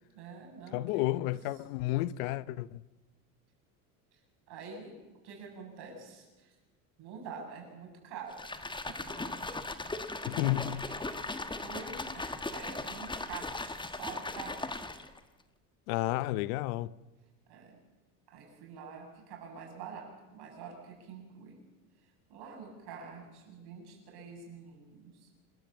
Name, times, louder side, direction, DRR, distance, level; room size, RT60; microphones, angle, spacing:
voice 1, 0.1-1.3 4.1-4.2 4.5-4.9 5.2-6.6 7.0-8.4 8.9-9.4 11.6-14.9 17.5-17.8 18.3-21.6 22.3-25.3, right 5 dB, 60° right, 7.5 m, -47 dB
voice 2, 0.7-2.8 10.3-10.8 15.9-16.9, left 17 dB, 75° left, 0.8 m, -31 dB
sound 1, 8.3-15.2, left 2 dB, 10° left, 1.5 m, -38 dB
27.0 x 13.5 x 7.2 m
supercardioid pair, 90°, 44 cm